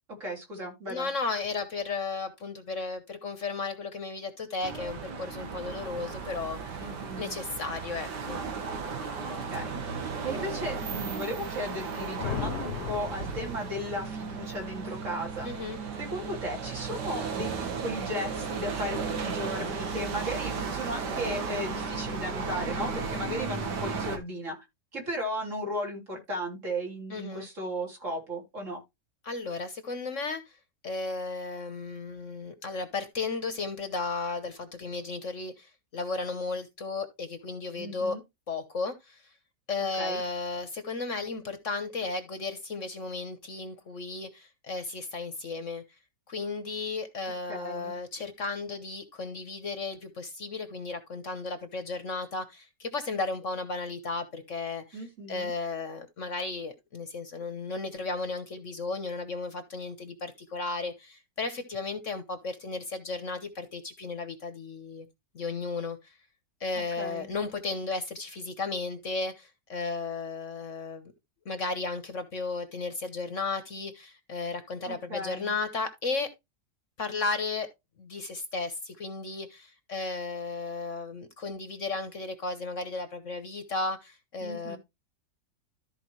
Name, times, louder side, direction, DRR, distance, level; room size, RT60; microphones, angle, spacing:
voice 1, 0.2-1.1 6.8-7.3 9.3-9.7 10.2-15.5 16.0-24.6 24.9-28.8 37.8-38.2 40.0-40.2 47.5-47.9 54.9-55.5 66.7-67.3 74.9-75.5 84.4-84.8, equal, 50° right, 3.6 m, -36 dB
voice 2, 0.9-6.8 7.2-8.4 15.4-15.8 27.1-27.5 29.2-30.6 30.8-38.2 38.5-39.2 39.7-45.8 46.3-65.1 65.3-66.1 66.6-71.1 71.4-76.3 77.0-77.7 78.0-84.8, left 3 dB, 50° left, 1.3 m, -34 dB
sound 1, 4.6-24.2, right 5 dB, 90° right, 2.0 m, -35 dB
sound 2, 12.2-14.2, left 8 dB, 85° left, 1.5 m, -36 dB
13.5 x 4.8 x 3.1 m
omnidirectional pair, 1.8 m